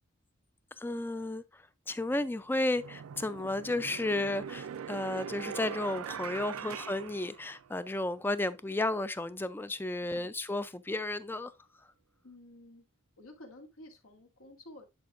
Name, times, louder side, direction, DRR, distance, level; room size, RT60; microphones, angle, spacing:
voice 1, 0.8-11.5, left 2 dB, 10° left, 0.3 m, -33 dB
sound 1, 2.0-2.1 2.7-7.9, right 8 dB, 80° right, 0.4 m, -42 dB
voice 2, 12.2-12.8 13.2-14.9, left 1 dB, 85° left, 2.0 m, -52 dB
10.5 x 5.2 x 2.4 m
head